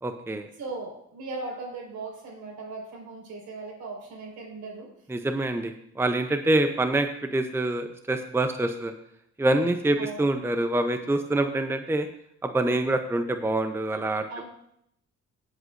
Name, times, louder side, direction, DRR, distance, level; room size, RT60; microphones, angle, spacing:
voice 1, 0.0-0.5 5.1-8.9 9.4-12.1 12.4-14.4, right 2 dB, 10° right, 7 dB, 0.7 m, -26 dB
voice 2, 0.6-4.9 9.9-10.2 14.3-14.4, right 3 dB, 70° right, -1 dB, 4.8 m, -38 dB
17.5 x 8.2 x 2.6 m, 0.74 s
cardioid pair, 90°, 30 cm